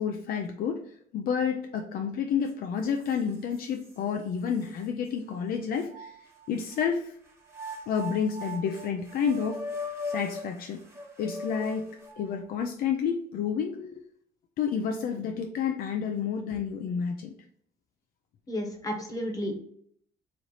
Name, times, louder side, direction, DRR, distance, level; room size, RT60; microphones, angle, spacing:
voice 1, 0.0-6.1 6.5-7.1 7.9-9.6 10.0-10.8 11.2-14.0 14.6-17.3, left 7 dB, 60° left, 4 dB, 0.5 m, -30 dB
sound 1, 2.4-2.5 3.0-3.9 4.6-4.7 5.8-6.9 7.5-12.4, left 1 dB, 15° right, 1.2 m, -39 dB
voice 2, 18.5-19.6, equal, 20° left, 2 dB, 1.0 m, -32 dB
3.2 x 2.9 x 3.9 m, 0.64 s
cardioid pair, 110°, 17 cm